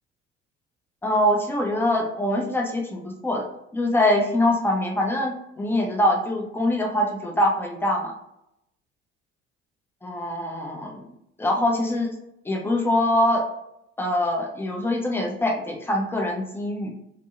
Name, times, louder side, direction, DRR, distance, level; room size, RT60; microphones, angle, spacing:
voice 1, 1.0-3.5 3.7-8.1 10.0-11.0 11.4-12.1 12.4-13.4 14.0-16.9, left 1 dB, 5° left, 0 dB, 0.5 m, -23 dB
2.6 x 2.0 x 2.4 m, 0.81 s
figure-of-eight pair, 50°, 34 cm